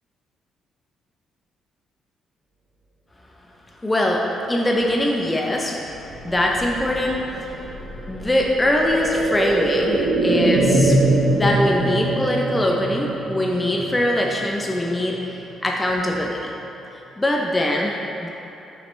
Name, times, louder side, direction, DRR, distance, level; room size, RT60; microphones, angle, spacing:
voice 1, 3.8-5.8 6.2-7.6 8.1-11.0 11.3-16.5 17.2-18.3, left 1 dB, 15° left, -1 dB, 0.6 m, -22 dB
sound 1, 5.8-15.6 15.9-16.0, right 2 dB, 90° right, 1.4 m, -23 dB
7.4 x 5.9 x 3.3 m, 3.0 s
cardioid pair, 100°, 0 cm